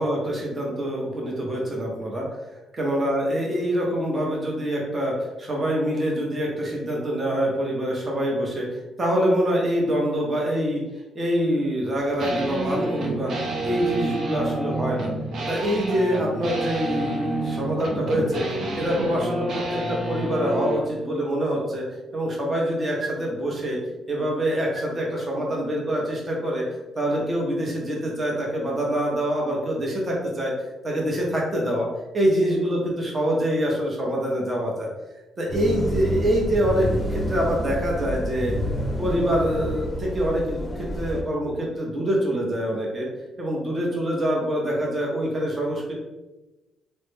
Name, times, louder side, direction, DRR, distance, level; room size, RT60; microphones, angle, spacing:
voice 1, 0.0-2.2 2.8-10.8 11.1-13.4 13.6-15.1 15.5-18.4 18.8-21.8 22.1-23.8 24.1-26.7 26.9-30.5 30.8-31.9 32.1-34.9 35.4-38.5 39.0-43.1 43.4-45.9, equal, 30° right, -2 dB, 0.8 m, -25 dB
sound 1, 12.2-20.9, right 2 dB, 70° right, 0.6 m, -29 dB
sound 2, 35.5-41.2, equal, 25° left, 0.6 m, -29 dB
3.1 x 2.1 x 3.2 m, 1.0 s
cardioid pair, 90°, 0 cm